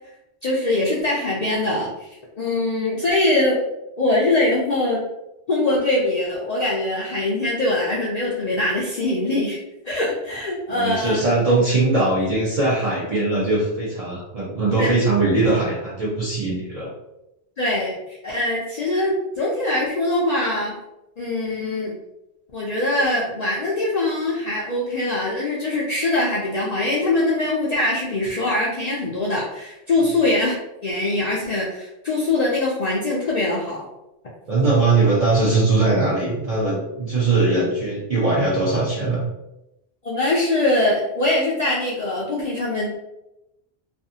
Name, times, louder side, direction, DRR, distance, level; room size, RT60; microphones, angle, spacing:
voice 1, 0.4-2.1 2.4-3.6 4.0-5.0 5.5-9.6 9.8-11.2 14.8-14.9 17.6-20.7 21.2-21.9 22.5-30.6 30.8-33.9 40.0-43.0, left 2 dB, 55° left, -4 dB, 0.5 m, -22 dB
voice 2, 10.7-16.9 34.5-39.2, right 3 dB, 45° right, -7 dB, 0.6 m, -20 dB
2.5 x 2.3 x 2.6 m, 0.91 s
omnidirectional pair, 1.1 m